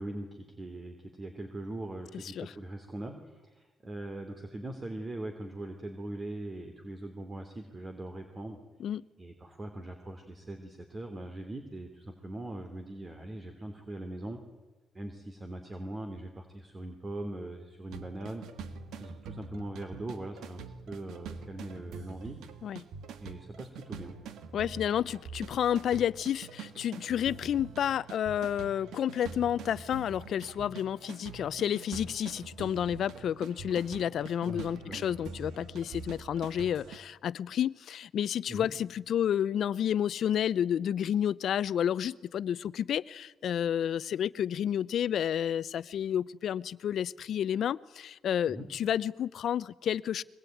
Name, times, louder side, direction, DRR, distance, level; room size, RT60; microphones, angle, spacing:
voice 1, 0.0-8.6 9.2-14.4 14.9-18.4 19.0-20.6 20.9-22.4 23.2-24.2 34.4-35.1 38.5-38.7 48.5-48.7, right 1 dB, 30° right, 3.1 m, -41 dB
sound 1, 17.9-37.0, right 5 dB, 80° right, 2.1 m, -45 dB
voice 2, 24.5-50.2, left 9 dB, 65° left, 0.8 m, -30 dB
24.0 x 21.5 x 9.3 m
cardioid pair, 90°, 0 cm